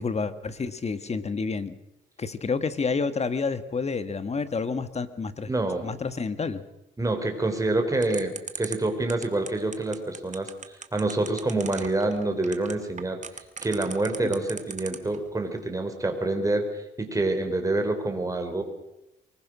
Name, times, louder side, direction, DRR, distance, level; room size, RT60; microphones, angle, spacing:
voice 1, 0.0-1.8 2.2-5.5 5.8-6.6 14.2-14.4, left 4 dB, 35° left, 12 dB, 1.7 m, -29 dB
voice 2, 5.5-5.9 7.0-13.2 13.6-18.6, right 2 dB, 15° right, 5 dB, 4.3 m, -27 dB
sound 1, 8.0-15.2, right 6 dB, 40° right, 2.2 m, -37 dB
24.0 x 20.5 x 6.3 m, 0.91 s
cardioid pair, 90°, 20 cm